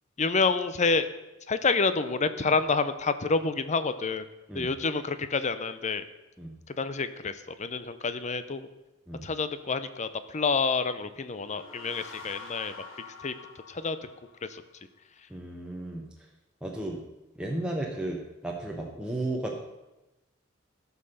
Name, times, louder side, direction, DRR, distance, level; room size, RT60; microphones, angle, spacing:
voice 1, 0.2-1.1 1.5-4.3 4.5-6.1 6.8-8.7 9.2-12.7 13.2-13.3 13.7-14.0 14.5-14.6, left 4 dB, 35° left, 12 dB, 0.7 m, -28 dB
sound 1, 11.2-14.8, left 4 dB, 90° left, 1.5 m, -46 dB
voice 2, 15.3-16.0 16.6-17.0 17.4-19.6, right 1 dB, 5° right, -1 dB, 1.0 m, -34 dB
14.0 x 5.8 x 6.5 m, 1.0 s
head